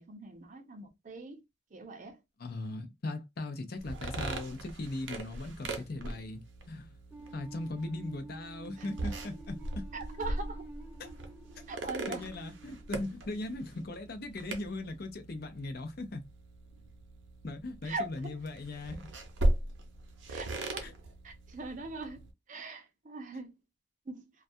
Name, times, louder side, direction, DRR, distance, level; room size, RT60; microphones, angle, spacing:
voice 1, 0.0-1.4 1.7-2.2 9.9-10.7 11.7-12.3 17.8-18.3 20.3-20.9 21.2-23.5 24.1-24.2, right 3 dB, 45° right, 0.5 m, -41 dB
voice 2, 2.4-6.4 6.7-7.0 7.3-9.9 11.0-11.1 12.1-16.2 17.4-19.1 20.8-20.9, left 2 dB, 55° left, 0.6 m, -39 dB
sound 1, 3.8-22.3, right 1 dB, 90° right, 0.6 m, -39 dB
sound 2, 7.1-14.0, right 2 dB, 10° right, 0.7 m, -50 dB
2.3 x 2.2 x 2.6 m
head